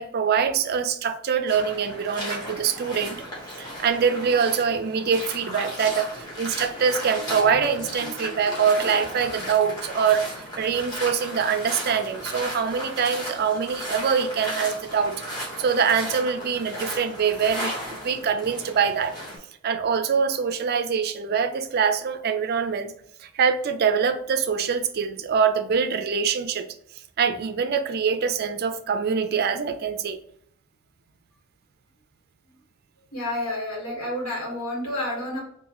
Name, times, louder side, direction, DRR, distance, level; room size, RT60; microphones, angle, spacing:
voice 1, 0.0-3.2 3.6-19.1 19.6-22.9 23.2-26.7 27.2-30.2, right 6 dB, 45° right, 9 dB, 0.3 m, -24 dB
sound 1, 1.5-19.4, equal, 20° left, 1.1 m, -35 dB
voice 2, 33.1-35.4, left 1 dB, 90° left, -3 dB, 1.4 m, -30 dB
3.9 x 2.5 x 2.9 m, 0.69 s
head